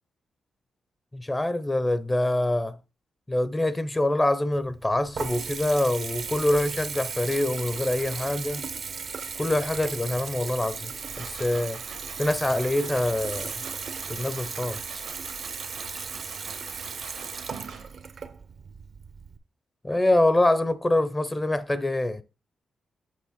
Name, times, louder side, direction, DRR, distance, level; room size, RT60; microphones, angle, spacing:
voice 1, 1.1-2.7 3.3-8.7 9.4-10.9 11.2-11.8 12.2-13.5 14.1-15.0 15.9-16.1 19.8-22.2, left 1 dB, 20° left, 0.7 m, -25 dB
Water tap faucet / Bathtub (filling or washing) / Trickle dribble, 4.5-19.4, right 5 dB, 60° right, 0.8 m, -36 dB
sound 1, 10.8-18.1, right 6 dB, 85° right, 1.6 m, -46 dB
7.6 x 3.1 x 5.8 m
cardioid pair, 70°, 0 cm